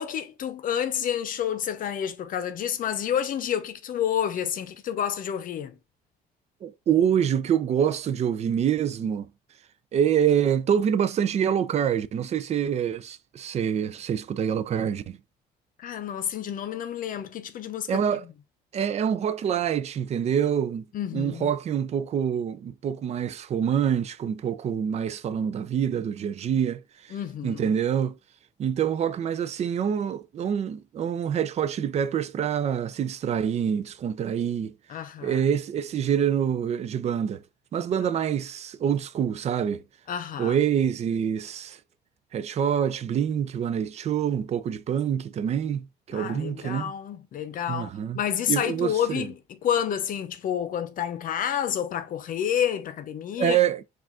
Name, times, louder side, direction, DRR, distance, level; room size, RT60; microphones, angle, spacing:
voice 1, 0.0-5.8 15.8-18.2 20.9-21.5 27.1-27.7 34.9-35.4 40.1-40.6 46.1-53.6, left 9 dB, 55° left, 0.7 m, -29 dB
voice 2, 6.6-9.3 9.9-15.2 17.9-18.2 18.7-20.9 21.1-27.1 27.4-28.2 28.6-34.7 35.2-37.4 37.7-39.8 40.4-41.8 42.3-46.9 47.7-48.2 48.5-49.3 53.4-53.8, right 8 dB, 40° right, 0.4 m, -26 dB
4.8 x 2.4 x 3.6 m
cardioid pair, 110°, 17 cm